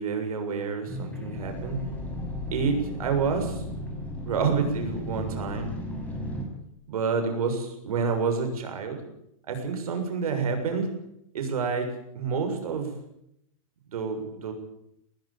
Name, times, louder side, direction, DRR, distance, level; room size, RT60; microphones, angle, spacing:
voice 1, 0.0-1.8 2.5-3.6 4.2-5.7 6.9-9.0 9.5-10.9 11.3-13.0 13.9-14.5, right 5 dB, 90° right, 5 dB, 7.0 m, -28 dB
sound 1, 0.9-6.4, left 1 dB, 10° left, 5.9 m, -35 dB
20.0 x 19.5 x 9.0 m, 0.78 s
supercardioid pair, 160°, 18 cm